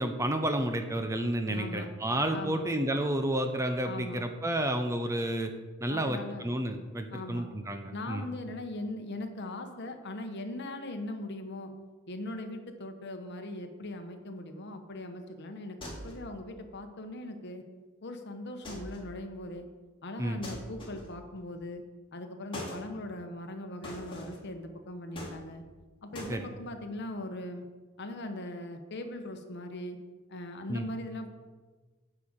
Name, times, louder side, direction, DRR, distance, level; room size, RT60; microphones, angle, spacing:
voice 1, 0.0-5.5 5.8-8.2 20.2-20.4 26.3-26.5 30.7-30.9, right 1 dB, 15° right, 6 dB, 0.6 m, -31 dB
voice 2, 1.5-1.9 2.3-2.7 3.8-4.2 5.9-6.5 7.1-7.5 7.9-11.7 12.1-17.6 18.0-19.7 20.0-21.8 22.1-25.6 26.0-27.6 28.0-30.0 30.3-31.3, left 1 dB, 55° left, 6 dB, 1.1 m, -40 dB
sound 1, 15.8-16.3 18.6-19.1 20.4-21.2 22.5-22.9 23.8-24.5 25.1-25.8 26.1-26.4, equal, 25° left, 2.5 m, -42 dB
10.0 x 5.0 x 7.3 m, 1.3 s
head